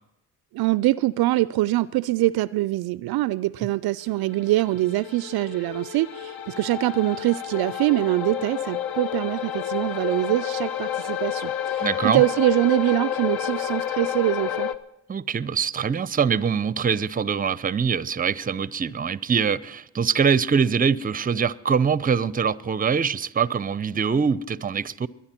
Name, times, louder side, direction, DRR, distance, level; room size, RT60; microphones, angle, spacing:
voice 1, 0.5-14.7, right 17 dB, 55° right, 0.5 m, -24 dB
sound 1, 4.4-14.7, left 10 dB, 55° left, 1.1 m, -30 dB
voice 2, 11.8-12.2 15.1-25.1, right 6 dB, 20° right, 0.6 m, -23 dB
22.0 x 10.0 x 4.4 m
hypercardioid pair, 50°, 44 cm